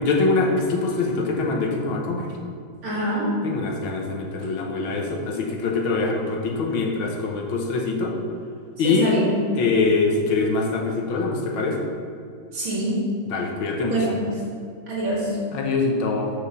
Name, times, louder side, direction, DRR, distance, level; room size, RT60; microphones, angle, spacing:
voice 1, 0.0-2.3 3.4-8.1 8.8-9.1 9.6-11.9 13.3-14.0 15.5-16.3, left 3 dB, 85° left, 1 dB, 1.9 m, -23 dB
voice 2, 2.8-3.3 8.8-9.4 12.5-13.0 13.8-14.3 14.9-15.3, right 1 dB, 80° right, -6 dB, 2.9 m, -25 dB
5.9 x 5.8 x 6.7 m, 2.3 s
omnidirectional pair, 2.1 m